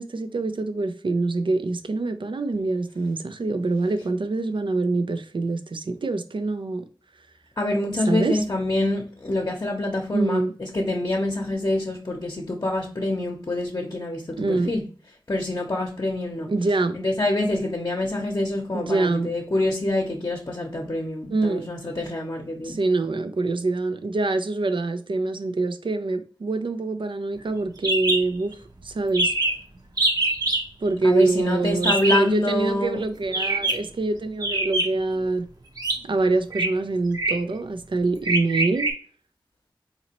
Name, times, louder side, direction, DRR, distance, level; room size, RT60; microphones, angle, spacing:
voice 1, 0.0-6.8 8.1-8.4 10.1-10.5 14.4-14.7 16.5-17.0 18.7-19.3 21.3-21.7 22.6-28.6 28.8-29.3 30.8-35.5 36.0-38.9, right 3 dB, 80° right, 0.4 m, -25 dB
voice 2, 7.6-14.8 15.3-16.5 16.9-22.8 31.0-33.0, left 1 dB, 50° left, 0.7 m, -26 dB
sound 1, 27.8-28.2 28.5-28.6 28.8-28.9 29.1-29.6 30.0-30.6 31.8-32.3 33.3-33.9 34.4-35.1 35.8-36.0 36.5-36.7 37.1-37.5 38.2-38.9, right 2 dB, 50° right, 0.8 m, -24 dB
4.0 x 2.7 x 2.9 m
wide cardioid pair, 65°, 8 cm